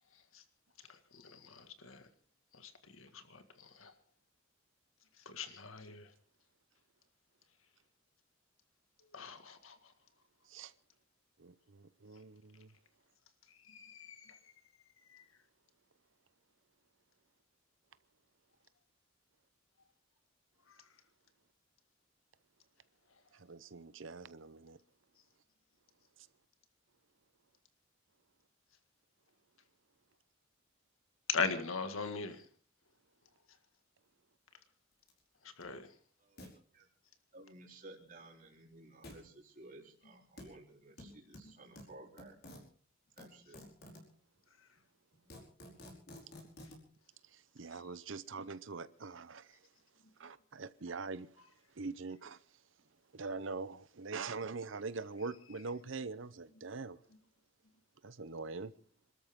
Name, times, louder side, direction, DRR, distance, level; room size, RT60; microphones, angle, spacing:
voice 1, 0.9-2.0 2.5-2.7 3.0-3.9 5.3-6.1 9.1-9.8 13.7-14.4 15.1-15.2 31.3-32.4 35.6-35.9, left 5 dB, 85° left, 1.9 m, -40 dB
voice 2, 11.4-12.7 23.3-24.8 26.2-26.3 47.2-49.6 50.2-51.3 51.7-52.4 53.1-57.0 58.0-58.7, right 4 dB, 65° right, 0.8 m, -43 dB
sound 1, 35.1-35.2 35.6-35.7 36.4-36.5 39.0-39.2 40.4-40.5 41.0-42.6 43.2-44.1 44.8-44.9 45.1-46.8, left 1 dB, 50° left, 5.1 m, -51 dB
voice 3, 36.2-36.9 37.3-42.3 43.2-43.6, right 2 dB, 40° right, 3.8 m, -56 dB
27.0 x 13.0 x 3.7 m
head